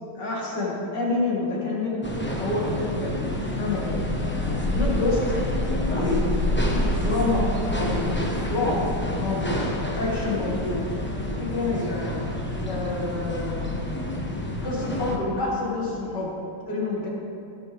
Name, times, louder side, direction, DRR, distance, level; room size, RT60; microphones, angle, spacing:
voice 1, 0.1-2.1 2.3-3.9 4.7-5.2 5.9-6.3 6.9-8.1 8.5-8.8 9.1-9.6 10.0-10.8 11.4-12.2 12.6-13.7 14.6-16.3 16.6-17.1, left 3 dB, 60° left, -5 dB, 2.7 m, -28 dB
sound 1, 2.0-15.2, left 1 dB, 10° left, 0.6 m, -27 dB
17.0 x 6.9 x 3.5 m, 2.7 s
omnidirectional pair, 2.2 m